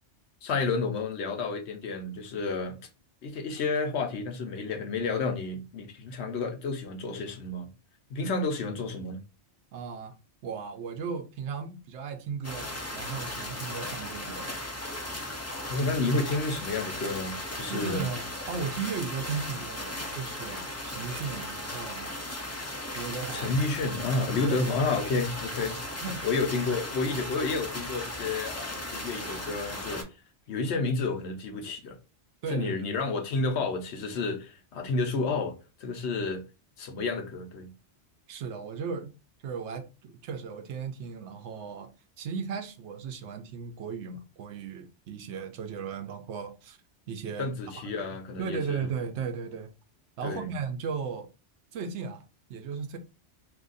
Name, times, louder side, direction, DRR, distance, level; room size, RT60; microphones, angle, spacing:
voice 1, 0.4-2.8 3.2-7.7 8.1-9.2 15.7-18.1 23.3-25.8 26.2-30.0 30.5-31.9 32.5-35.5 35.8-36.4 36.8-37.7 47.4-48.9 50.2-50.5, left 3 dB, 70° left, 0.9 m, -30 dB
voice 2, 9.7-10.1 10.4-14.7 17.7-22.2 22.9-23.6 24.4-24.9 26.0-26.3 32.4-33.0 38.3-39.1 39.4-46.8 47.1-47.5 47.8-48.0 48.4-49.7 50.2-51.3 51.7-52.2 52.5-53.0, right 6 dB, 75° right, 0.9 m, -36 dB
sound 1, 12.4-30.0, left 1 dB, 20° left, 0.4 m, -37 dB
2.7 x 2.5 x 3.8 m
omnidirectional pair, 1.2 m